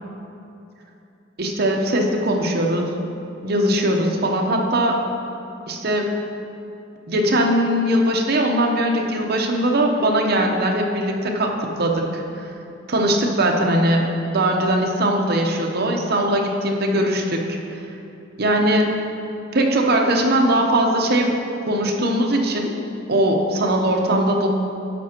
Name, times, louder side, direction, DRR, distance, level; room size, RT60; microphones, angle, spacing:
voice 1, 1.4-3.0 3.4-5.0 5.7-6.1 7.1-12.2 12.9-14.1 14.3-17.6 18.4-18.9 19.5-21.4 21.7-22.7 23.1-24.5, right 1 dB, 50° right, 1 dB, 0.8 m, -20 dB
11.5 x 7.4 x 2.9 m, 2.8 s
head